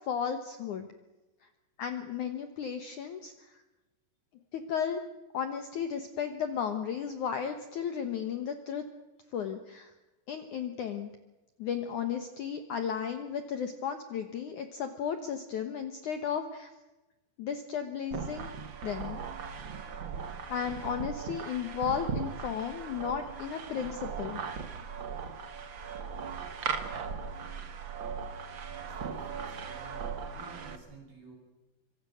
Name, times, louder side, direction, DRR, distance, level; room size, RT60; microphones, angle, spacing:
voice 1, 0.1-0.9 1.8-3.3 4.5-5.0 5.3-8.8 9.3-9.9 10.3-11.1 11.6-16.7 17.4-18.5 18.8-19.2 20.5-24.4, left 7 dB, 65° left, 8 dB, 2.1 m, -34 dB
sound 1, 18.1-30.8, right 6 dB, 85° right, 1.0 m, -38 dB
voice 2, 28.6-31.3, right 3 dB, 60° right, 0 dB, 9.7 m, -52 dB
25.5 x 25.0 x 6.4 m, 1.1 s
omnidirectional pair, 4.9 m